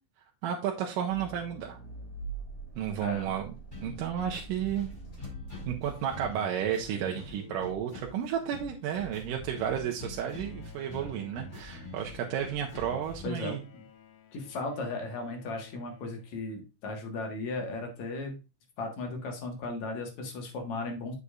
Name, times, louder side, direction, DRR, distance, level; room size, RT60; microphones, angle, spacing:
voice 1, 0.4-1.8 2.8-3.5 3.8-4.9 5.7-13.6, right 9 dB, 85° right, 1 dB, 2.4 m, -32 dB
Accelerating revving vroom, 1.1-6.5, right 3 dB, 30° left, 2.2 m, -45 dB
voice 2, 3.0-3.3 13.2-13.8 14.3-18.4 18.8-21.1, left 3 dB, 60° left, 3 dB, 2.7 m, -36 dB
sound 1, 3.7-13.3, left 2 dB, 15° left, 3.9 m, -45 dB
Bowed string instrument, 10.1-16.9, left 6 dB, 85° left, 2.7 m, -56 dB
8.2 x 6.6 x 2.4 m, 0.29 s
omnidirectional pair, 3.8 m